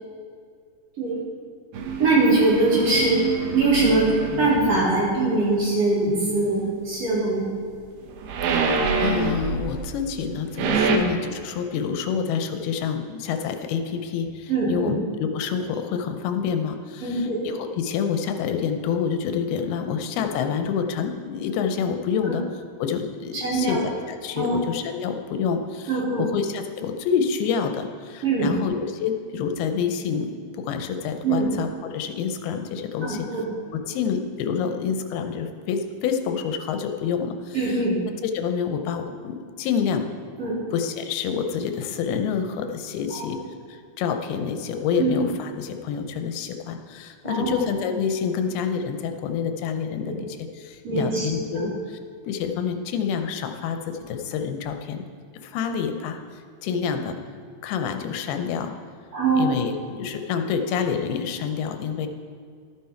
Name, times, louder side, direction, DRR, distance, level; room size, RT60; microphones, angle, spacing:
sound 1, 1.7-4.7 8.0-9.9 10.3-11.0, right 4 dB, 85° right, 3.0 m, -26 dB
voice 1, 2.0-3.2 3.5-4.1 4.4-7.5 10.8-11.0 14.5-14.9 17.0-17.4 19.8-19.9 22.2-22.3 23.4-23.8 24.4-24.6 25.9-26.2 28.2-28.5 31.2-31.5 33.0-33.4 37.5-37.9 40.4-40.5 43.1-43.2 45.0-45.1 47.2-47.6 50.0-50.1 50.8-51.3 51.5-51.7 59.1-59.5, right 3 dB, 40° right, -8 dB, 4.3 m, -22 dB
voice 2, 8.5-22.4 22.8-33.3 33.7-37.8 38.2-40.1 40.7-43.4 43.7-52.0 52.3-55.1 55.4-56.2 56.6-57.2 57.6-58.7 59.4-62.1, left 6 dB, 85° left, 6 dB, 2.7 m, -28 dB
12.0 x 9.3 x 4.4 m, 2.2 s
omnidirectional pair, 4.4 m